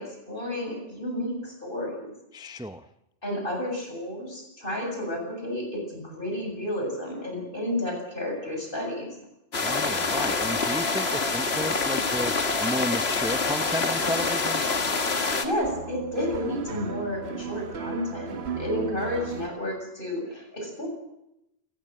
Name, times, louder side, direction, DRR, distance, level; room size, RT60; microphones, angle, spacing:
voice 1, 0.0-2.1 3.2-9.1 15.4-20.9, left 1 dB, 60° left, 2 dB, 7.6 m, -31 dB
voice 2, 2.3-2.9 9.6-14.6, equal, 5° right, 10 dB, 0.6 m, -33 dB
sound 1, 9.5-15.5, left 4 dB, 75° left, 2.0 m, -26 dB
sound 2, 15.6-19.5, right 6 dB, 80° right, 1.3 m, -35 dB
28.5 x 15.5 x 7.8 m, 0.86 s
omnidirectional pair, 1.1 m